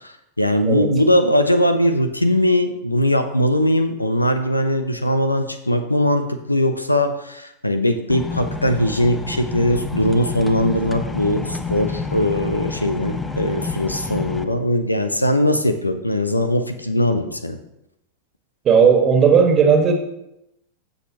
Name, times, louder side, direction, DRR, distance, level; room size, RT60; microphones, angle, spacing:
voice 1, 0.0-17.6, left 1 dB, 85° left, 9 dB, 0.7 m, -20 dB
sound 1, 8.1-14.4, left 4 dB, 10° left, 0.8 m, -29 dB
voice 2, 18.6-19.9, right 6 dB, 30° right, 4 dB, 1.7 m, -14 dB
15.0 x 6.6 x 3.0 m, 0.85 s
figure-of-eight pair, 90°, 0 cm